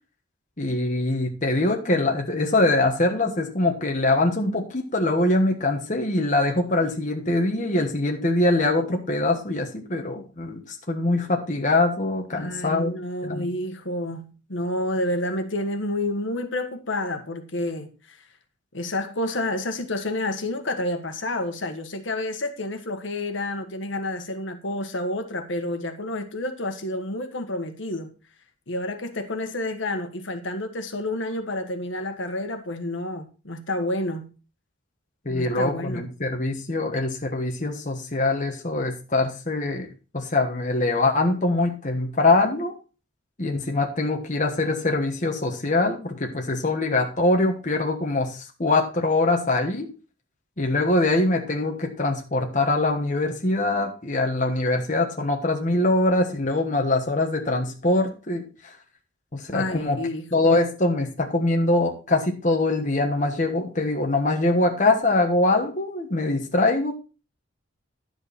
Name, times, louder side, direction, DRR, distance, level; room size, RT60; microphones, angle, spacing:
voice 1, 0.6-12.9 13.2-13.5 35.2-42.7 43.4-49.9 50.6-58.8 59.3-60.0 60.3-66.9, left 2 dB, 40° left, 1.3 m, -23 dB
voice 2, 12.4-18.2 18.7-28.1 28.7-34.3 35.3-36.0 59.5-60.6, left 1 dB, 65° left, 1.5 m, -29 dB
11.0 x 7.9 x 4.2 m
head